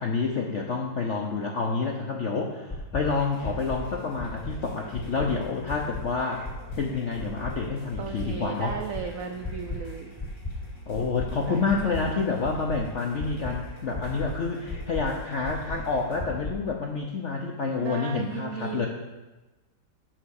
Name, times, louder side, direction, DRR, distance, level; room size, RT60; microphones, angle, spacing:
voice 1, 0.0-6.4 6.8-8.8 10.9-18.9, left 4 dB, 65° left, 1 dB, 0.7 m, -28 dB
sound 1, 2.7-3.0 3.4-3.8 4.2-4.5 4.9-5.3 5.7-6.0 6.4-6.8 7.2-7.5 7.9-8.3 8.7-9.0 9.4-9.8 10.2-10.5 10.9-11.3 11.7-12.0 12.4-12.8 13.2-13.5 13.9-14.3 14.7-15.0 15.4-15.8 16.2-16.5, left 2 dB, 15° left, 0.7 m, -34 dB
sound 2, 3.1-16.2, left 2 dB, 90° left, 3.6 m, -47 dB
voice 2, 8.0-10.1 11.5-12.4 17.8-18.9, right 6 dB, 75° right, 5 dB, 0.7 m, -36 dB
7.9 x 5.8 x 6.4 m, 1.1 s
omnidirectional pair, 2.2 m